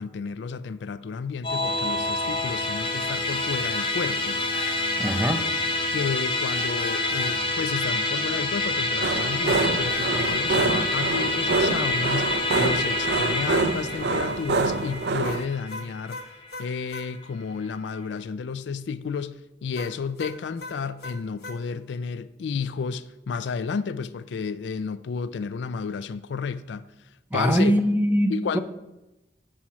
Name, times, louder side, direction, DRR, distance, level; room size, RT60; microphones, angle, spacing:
voice 1, 0.0-4.4 5.9-16.2 16.6-26.8 27.3-27.7 28.3-28.6, left 5 dB, 80° left, 0.3 m, -31 dB
Musical instrument, 1.4-17.0, left 2 dB, 30° left, 0.9 m, -27 dB
sound 1, 4.5-4.8 5.1-5.3 6.5-7.4 9.9-10.8 15.2-17.1 19.7-21.6, left 3 dB, 60° left, 1.0 m, -39 dB
voice 2, 5.0-5.5 27.3-28.6, equal, 10° right, 0.5 m, -22 dB
sound 2, 9.0-15.5, right 3 dB, 65° right, 0.4 m, -26 dB
7.6 x 4.3 x 5.9 m
head